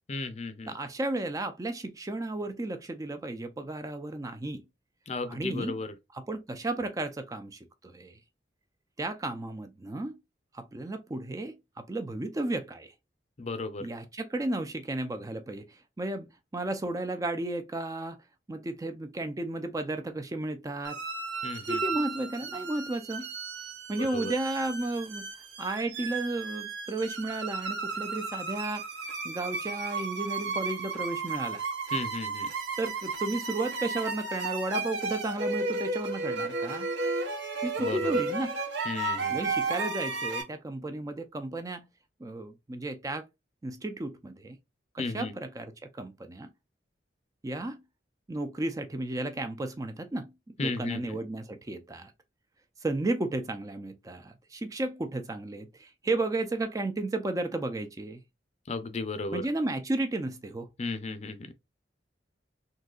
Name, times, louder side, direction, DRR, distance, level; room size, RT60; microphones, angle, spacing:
voice 1, 0.1-0.7 5.1-5.9 13.4-13.9 21.4-21.8 24.1-24.3 31.9-32.5 37.8-38.2 38.9-39.4 45.0-45.3 50.6-51.2 58.7-59.4 60.8-61.4, left 3 dB, 35° left, 0.5 m, -34 dB
voice 2, 0.7-4.6 5.3-5.8 6.1-8.2 9.0-10.1 10.5-12.9 13.8-16.3 16.5-18.2 18.5-21.0 21.7-23.3 23.9-25.2 25.6-28.9 29.2-31.6 32.8-36.9 37.6-38.6 39.3-41.9 42.2-43.3 43.6-44.6 44.9-46.5 47.4-47.8 48.3-50.3 50.6-52.1 52.8-58.2 59.3-60.7, right 2 dB, 20° right, 0.4 m, -33 dB
sound 1, 20.8-40.4, right 3 dB, 80° right, 1.0 m, -33 dB
3.8 x 2.7 x 2.3 m
head